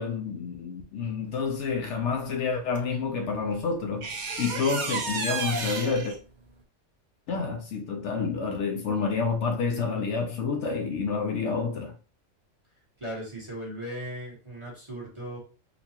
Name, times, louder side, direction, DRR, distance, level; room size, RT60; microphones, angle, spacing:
voice 1, 0.0-4.1 4.4-6.2 7.3-11.9, left 5 dB, 70° left, 0.8 m, -29 dB
sound 1, 2.8-2.9 4.0-6.2, right 4 dB, 60° right, 0.4 m, -32 dB
voice 2, 13.0-15.4, equal, 25° right, 1.1 m, -37 dB
3.9 x 2.3 x 2.8 m
omnidirectional pair, 1.4 m